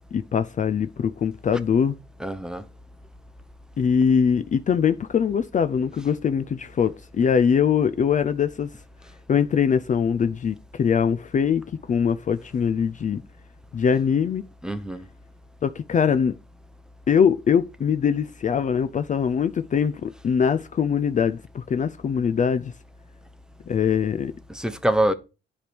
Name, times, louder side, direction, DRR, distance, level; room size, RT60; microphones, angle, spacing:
voice 1, 0.1-2.0 3.8-8.7 9.3-11.6 11.9-13.2 13.7-14.4 15.6-16.3 17.1-22.7 23.7-24.3, left 7 dB, 40° left, 0.5 m, -22 dB
voice 2, 2.2-2.6 14.6-15.1 24.5-25.1, right 1 dB, 5° right, 1.0 m, -24 dB
9.9 x 3.4 x 6.0 m
cardioid pair, 90°, 20 cm